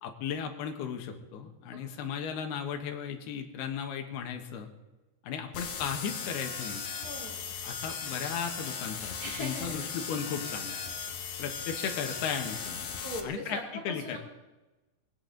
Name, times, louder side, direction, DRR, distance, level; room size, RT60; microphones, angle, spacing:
voice 1, 0.0-4.7 5.2-6.8 7.6-10.8 11.4-12.9 13.2-14.2, left 7 dB, 75° left, 4 dB, 3.4 m, -36 dB
voice 2, 1.7-2.1 7.0-7.4 9.2-9.8 13.0-14.2, equal, 30° left, 0 dB, 1.9 m, -40 dB
sound 1, 5.5-13.2, left 6 dB, 60° left, 2.4 m, -37 dB
20.5 x 16.5 x 3.9 m, 1.1 s
omnidirectional pair, 4.7 m